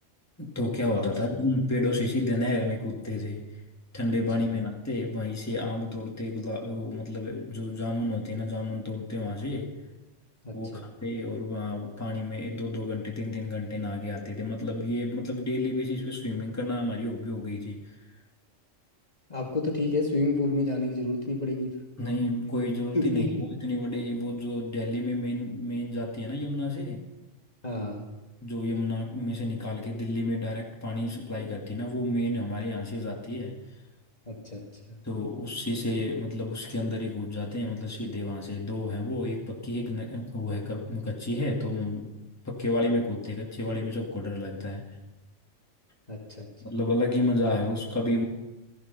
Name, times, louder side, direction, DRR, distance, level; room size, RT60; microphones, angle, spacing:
voice 1, 0.4-3.4 3.9-9.8 10.5-18.0 22.0-23.3 23.6-27.1 28.4-33.6 35.0-42.1 42.4-44.9 46.6-48.2, left 1 dB, 10° left, -2 dB, 2.3 m, -30 dB
voice 2, 10.4-10.8 19.3-21.7 22.9-23.5 27.6-28.0 34.3-34.6 46.1-46.5, left 2 dB, 30° left, -1 dB, 2.3 m, -29 dB
16.5 x 15.0 x 5.6 m, 1.0 s
omnidirectional pair, 1.3 m